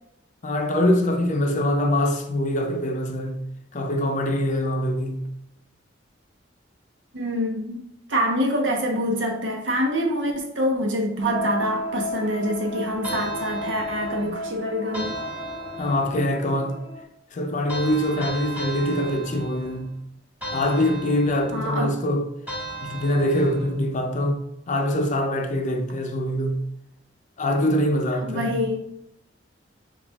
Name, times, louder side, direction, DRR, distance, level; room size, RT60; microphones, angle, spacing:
voice 1, 0.4-3.5 3.7-5.3 15.8-16.8 17.3-20.0 20.5-22.3 22.8-26.6 27.4-28.6, left 1 dB, 45° left, 0.5 m, -24 dB
voice 2, 7.1-7.8 8.1-15.2 21.5-22.0 28.2-28.9, equal, 85° right, 0.9 m, -25 dB
sound 1, 11.2-17.0, left 2 dB, 55° right, 1.3 m, -33 dB
sound 2, 13.0-14.4 14.9-16.3 17.7-19.9 20.4-21.7 22.5-23.8, right 2 dB, 10° right, 1.6 m, -36 dB
7.0 x 2.4 x 2.3 m
head